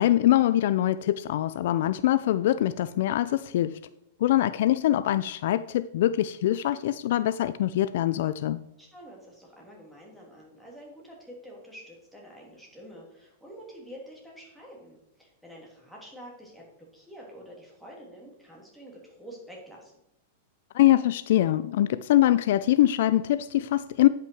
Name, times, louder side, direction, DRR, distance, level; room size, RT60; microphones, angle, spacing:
voice 1, 0.0-3.8 4.2-8.6 20.7-24.1, left 13 dB, 65° left, 0.3 m, -23 dB
voice 2, 8.8-16.6 16.9-19.9, equal, ahead, 2.9 m, -47 dB
9.5 x 5.7 x 4.6 m
hypercardioid pair, 130°, 0 cm